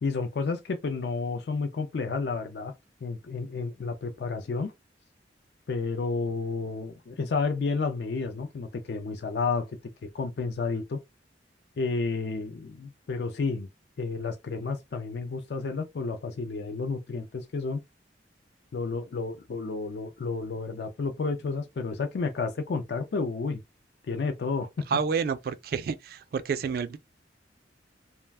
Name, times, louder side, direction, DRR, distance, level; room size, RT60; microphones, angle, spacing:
voice 1, 0.0-2.7 3.0-4.7 5.7-9.7 10.0-11.0 11.8-13.7 14.0-17.8 18.7-23.6 24.1-24.7, left 4 dB, 65° left, 0.4 m, -31 dB
voice 2, 24.9-27.0, right 6 dB, 55° right, 0.3 m, -29 dB
2.3 x 2.1 x 3.3 m
head